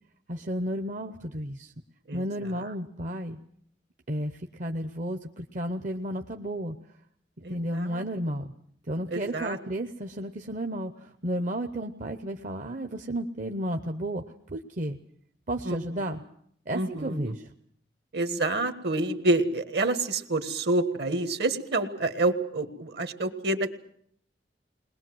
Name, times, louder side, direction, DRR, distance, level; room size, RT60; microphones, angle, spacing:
voice 1, 0.3-1.7 2.1-3.4 4.1-6.8 7.5-8.5 8.9-15.0 15.5-16.2 16.7-17.5, right 1 dB, 45° right, 5 dB, 0.9 m, -32 dB
voice 2, 7.4-8.0 9.1-9.6 15.6-16.0 16.7-17.3 18.1-23.7, right 2 dB, 65° right, 10 dB, 1.6 m, -28 dB
21.5 x 20.5 x 7.8 m, 0.66 s
head